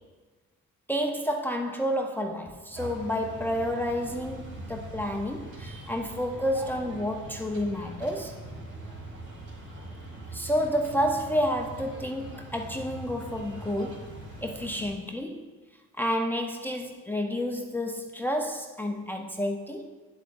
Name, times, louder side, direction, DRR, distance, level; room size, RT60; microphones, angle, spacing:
voice 1, 0.9-8.4 10.3-15.5 16.0-19.9, equal, 5° left, 2 dB, 0.7 m, -30 dB
sound 1, 2.7-14.9, right 1 dB, 50° right, 2.6 m, -42 dB
9.2 x 8.3 x 2.6 m, 1.4 s
cardioid pair, 90°, 30 cm